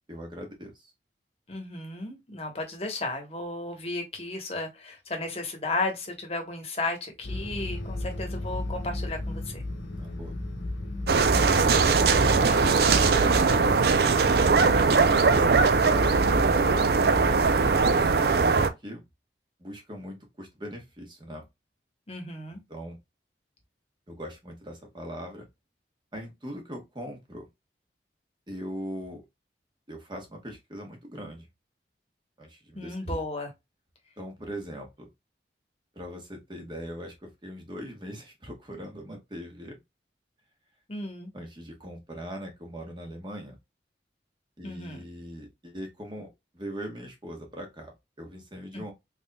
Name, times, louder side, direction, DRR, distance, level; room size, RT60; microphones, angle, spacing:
voice 1, 0.1-0.9 8.0-8.4 10.0-10.3 11.8-13.5 17.8-19.0 19.6-21.4 22.7-23.0 24.1-25.4 26.1-27.5 28.5-29.2 29.9-31.5 32.4-33.2 34.2-35.1 35.9-39.8 41.3-43.6 44.6-46.3 46.5-48.9, equal, 25° right, 1.1 m, -40 dB
voice 2, 1.5-9.6 22.1-22.6 32.7-33.5 40.9-41.3 44.6-45.0 48.7-48.9, left 2 dB, 35° left, 1.1 m, -34 dB
sound 1, 7.2-17.8, left 1 dB, 90° left, 1.0 m, -34 dB
sound 2, 11.1-18.7, right 4 dB, 60° right, 0.4 m, -21 dB
3.9 x 3.5 x 2.2 m
head